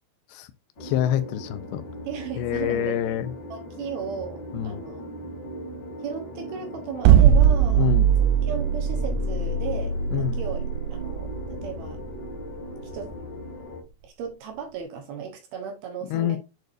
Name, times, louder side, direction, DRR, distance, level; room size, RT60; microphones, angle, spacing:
voice 1, 0.8-1.8 2.4-3.3 4.5-4.8 7.7-8.1 10.1-10.4 16.1-16.4, left 11 dB, 85° left, 2.4 m, -26 dB
sound 1, 0.8-13.8, equal, 35° left, 2.5 m, -38 dB
voice 2, 2.1-3.0 3.5-5.0 6.0-10.6 10.9-12.0 12.8-13.1 14.0-16.4, right 6 dB, 70° right, 2.5 m, -36 dB
sound 2, 7.1-13.2, right 8 dB, 85° right, 2.3 m, -20 dB
7.9 x 7.0 x 2.6 m
omnidirectional pair, 5.6 m